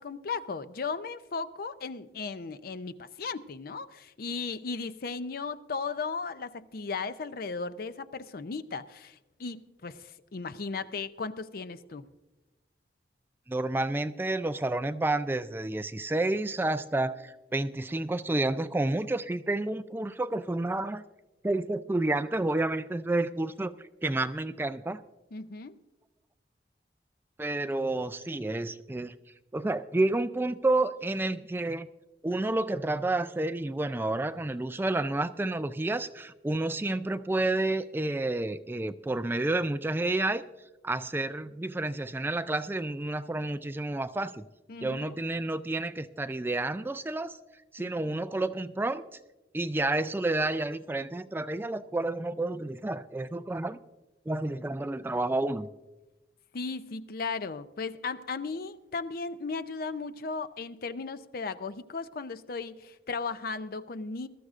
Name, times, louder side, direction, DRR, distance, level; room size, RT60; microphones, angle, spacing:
voice 1, 0.0-12.1 25.3-25.8 44.7-45.2 47.8-48.1 56.5-64.3, left 4 dB, 55° left, 13 dB, 0.5 m, -36 dB
voice 2, 13.5-21.0 21.4-23.7 24.0-25.0 27.4-29.1 29.5-31.9 32.2-40.4 40.8-44.5 44.8-47.4 47.7-49.0 49.5-53.8 54.3-55.7, right 2 dB, 10° right, 11 dB, 0.3 m, -30 dB
21.0 x 13.0 x 2.5 m, 1.1 s
head